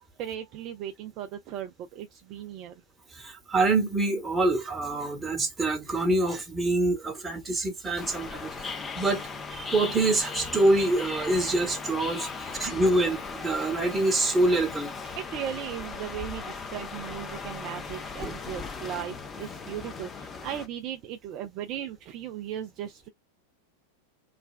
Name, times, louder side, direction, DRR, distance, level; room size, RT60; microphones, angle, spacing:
voice 1, 0.2-2.8 15.2-23.1, right 10 dB, 40° right, 0.4 m, -37 dB
voice 2, 3.1-14.9 18.2-18.3, right 2 dB, 15° right, 0.9 m, -26 dB
sound 1, 8.0-20.7, left 4 dB, 20° left, 0.5 m, -38 dB
3.2 x 2.2 x 2.3 m
figure-of-eight pair, 90°, 0 cm